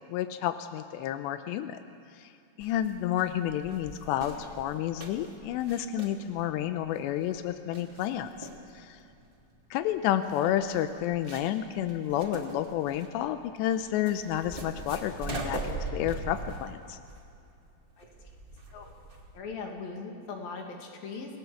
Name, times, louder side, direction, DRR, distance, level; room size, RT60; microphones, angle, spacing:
voice 1, 0.1-1.8 2.1-2.3 2.6-8.5 8.7-9.0 9.7-17.0, left 11 dB, 90° left, 9 dB, 2.9 m, -30 dB
sound 1, 2.6-19.4, right 2 dB, 20° right, 1.5 m, -42 dB
voice 2, 19.3-21.4, left 4 dB, 60° left, 2 dB, 4.0 m, -39 dB
28.0 x 18.0 x 7.2 m, 2.6 s
omnidirectional pair, 4.9 m